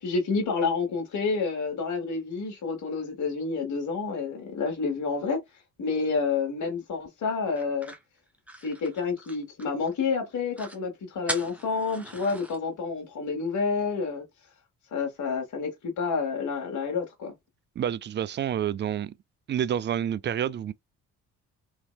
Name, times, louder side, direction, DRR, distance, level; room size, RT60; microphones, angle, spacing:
voice 1, 0.0-5.4 5.8-7.9 8.6-14.2 14.9-17.3, left 4 dB, 55° left, 1.2 m, -29 dB
sound 1, 7.6-9.9 10.2-10.3 10.5-10.8 11.3-12.6, right 1 dB, 5° right, 0.9 m, -39 dB
voice 2, 17.8-19.1 19.5-20.7, right 9 dB, 30° right, 0.4 m, -28 dB
3.1 x 2.7 x 2.2 m
supercardioid pair, 55°, 37 cm